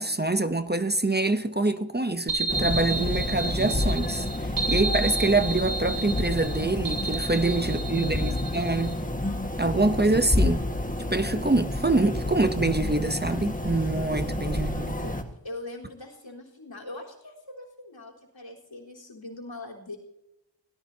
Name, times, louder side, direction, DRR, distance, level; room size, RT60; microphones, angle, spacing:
voice 1, 0.0-8.9 9.6-10.6 11.1-15.0, right 2 dB, 25° right, 0.8 m, -25 dB
sound 1, 2.3-8.9, right 3 dB, 65° right, 4.7 m, -32 dB
sound 2, 2.5-15.2, left 1 dB, 20° left, 1.6 m, -29 dB
voice 2, 7.6-8.4 14.5-15.2 15.4-20.0, left 2 dB, 80° left, 4.1 m, -42 dB
29.0 x 17.0 x 2.8 m
wide cardioid pair, 55°, 44 cm